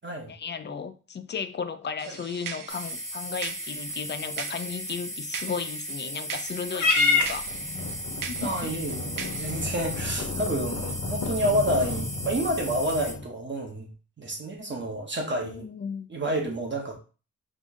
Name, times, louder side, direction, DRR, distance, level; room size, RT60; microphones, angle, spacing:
voice 1, 0.3-7.5 8.3-8.7 10.3-10.4 15.4-16.1, left 6 dB, 35° left, 11 dB, 0.4 m, -35 dB
sound 1, 2.0-9.7, right 8 dB, 80° right, 0.5 m, -41 dB
sound 2, 2.7-13.1, equal, 50° right, 1.7 m, -36 dB
Purr / Meow, 6.7-13.2, left 3 dB, 65° left, 1.0 m, -30 dB
voice 2, 8.4-13.9 14.2-15.7 16.1-16.9, right 1 dB, 35° right, 1 dB, 0.9 m, -29 dB
5.0 x 2.6 x 3.6 m, 0.35 s
wide cardioid pair, 155°, 32 cm